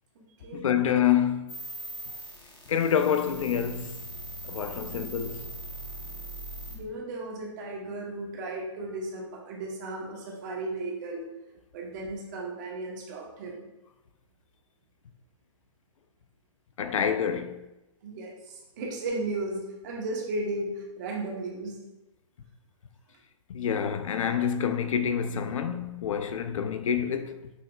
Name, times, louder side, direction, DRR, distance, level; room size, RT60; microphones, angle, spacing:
voice 1, 0.5-1.6 2.7-4.0 4.4-5.5 16.8-17.6 23.5-27.5, left 8 dB, 85° left, 0.4 m, -27 dB
sound 1, 1.5-6.8, right 1 dB, 30° left, 0.9 m, -40 dB
voice 2, 6.7-11.3 11.7-13.7 18.0-21.8, right 2 dB, 35° right, 1.0 m, -35 dB
5.7 x 2.8 x 2.2 m
hypercardioid pair, 160°, 16 cm